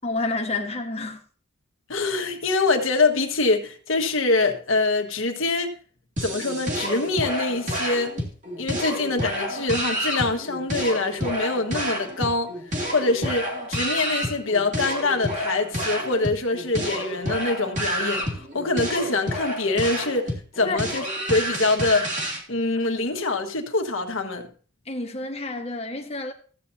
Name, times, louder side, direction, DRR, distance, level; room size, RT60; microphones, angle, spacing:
voice 1, 0.0-1.2 20.6-20.8 24.9-26.3, left 2 dB, 30° left, 1.4 m, -29 dB
voice 2, 1.9-5.7 6.2-8.1 8.6-12.5 12.9-22.1 22.5-24.5, left 3 dB, 85° left, 1.5 m, -24 dB
sound 1, 6.2-22.4, equal, 40° right, 2.5 m, -29 dB
14.5 x 8.4 x 2.7 m
head